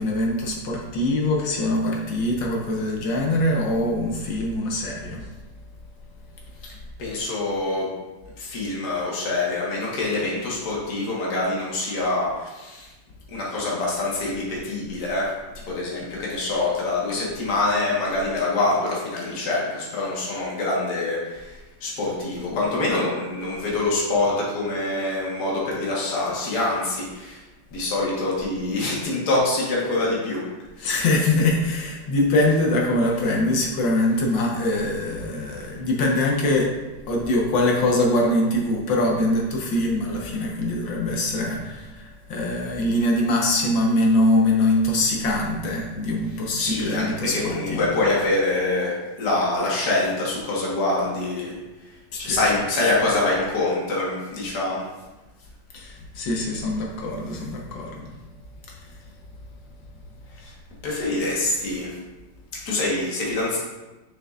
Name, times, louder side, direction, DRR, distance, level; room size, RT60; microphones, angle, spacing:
voice 1, 0.0-5.3 30.8-36.7 37.1-47.9 52.1-52.6 55.7-58.1 58.7-58.9, left 1 dB, 85° left, -1 dB, 1.8 m, -23 dB
voice 2, 7.0-7.9 8.4-12.9 13.3-15.3 15.7-27.4 27.7-30.4 30.8-30.9 35.7-35.8 46.6-47.0 47.3-51.5 52.2-54.9 60.4-60.5 60.8-62.0 62.7-63.6, left 2 dB, 60° left, -5 dB, 2.0 m, -25 dB
6.7 x 6.4 x 2.5 m, 1.1 s
omnidirectional pair, 2.0 m